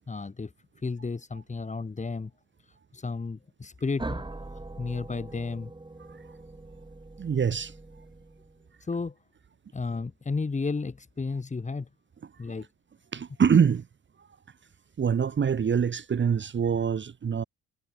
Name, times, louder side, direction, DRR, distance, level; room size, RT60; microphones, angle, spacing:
voice 1, 0.1-0.5 0.8-2.3 2.6-4.2 4.8-5.7 8.8-9.1 9.7-11.9 12.4-12.7, left 4 dB, 25° left, 2.1 m, -33 dB
sound 1, 4.0-8.7, right 2 dB, 15° right, 4.8 m, -41 dB
voice 2, 7.2-7.7 13.1-13.8 15.0-17.4, right 7 dB, 40° right, 1.3 m, -24 dB
cardioid pair, 90°, 30 cm